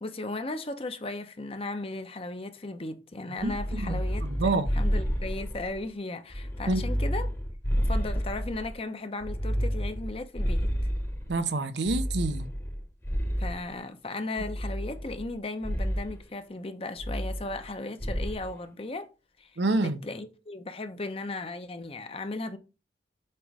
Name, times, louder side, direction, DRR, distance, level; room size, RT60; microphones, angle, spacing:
voice 1, 0.0-7.3 7.8-10.7 13.4-19.1 19.4-22.6, left 2 dB, 35° left, 0.7 m, -36 dB
voice 2, 3.3-4.7 6.7-6.8 11.3-12.5 19.6-20.0, right 2 dB, 80° right, 0.7 m, -28 dB
sound 1, 3.4-5.8 6.3-8.7 9.2-11.4 11.9-13.7 14.4-15.3 15.6-16.1 17.0-17.7 18.0-18.5, equal, 15° left, 1.0 m, -30 dB
7.6 x 3.1 x 4.7 m
head